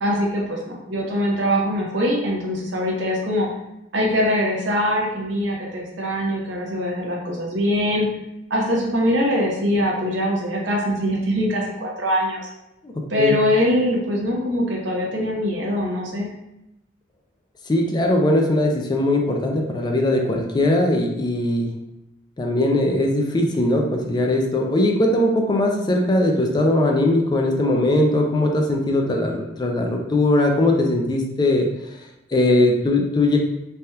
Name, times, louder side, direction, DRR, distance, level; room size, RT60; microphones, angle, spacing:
voice 1, 0.0-3.5 3.9-8.1 8.5-12.5 13.1-16.3, equal, 90° right, -2 dB, 0.8 m, -22 dB
voice 2, 17.7-21.7 22.4-31.7 32.3-33.4, left 1 dB, 25° left, 1 dB, 0.4 m, -20 dB
3.3 x 2.2 x 2.8 m, 0.88 s
head